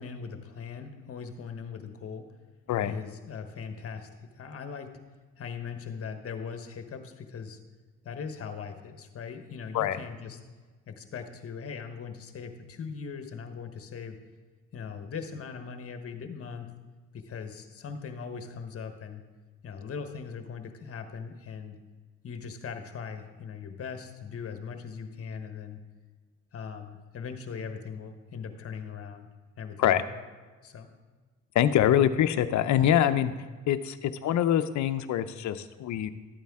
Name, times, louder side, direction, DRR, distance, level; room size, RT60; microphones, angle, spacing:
voice 1, 0.0-2.3 2.8-5.0 5.4-7.6 8.0-10.4 10.9-14.2 14.7-16.7 17.1-19.2 19.6-21.8 22.2-25.8 26.5-29.3 29.6-30.3 30.6-30.9, left 6 dB, 50° left, 7 dB, 1.2 m, -40 dB
voice 2, 31.5-33.3 33.7-36.1, left 10 dB, 70° left, 10 dB, 0.6 m, -24 dB
12.5 x 8.7 x 3.6 m, 1.4 s
cardioid pair, 90°, 30 cm